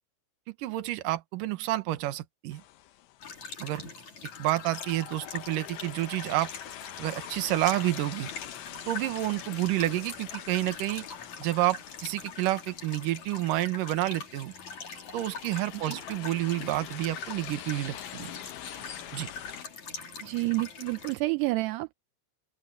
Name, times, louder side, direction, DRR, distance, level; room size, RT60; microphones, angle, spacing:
voice 1, 0.6-2.6 3.6-3.9 4.4-6.5 7.0-8.3 8.9-11.1 11.4-14.5 15.1-18.3 19.1-19.3, right 16 dB, 65° right, 2.3 m, -29 dB
sound 1, 2.5-3.5 4.3-13.8 14.6-19.7, left 14 dB, 85° left, 3.7 m, -45 dB
sound 2, 3.2-21.2, left 5 dB, 40° left, 4.5 m, -43 dB
voice 2, 20.2-21.9, right 21 dB, 85° right, 2.4 m, -29 dB
open air
omnidirectional pair, 5.3 m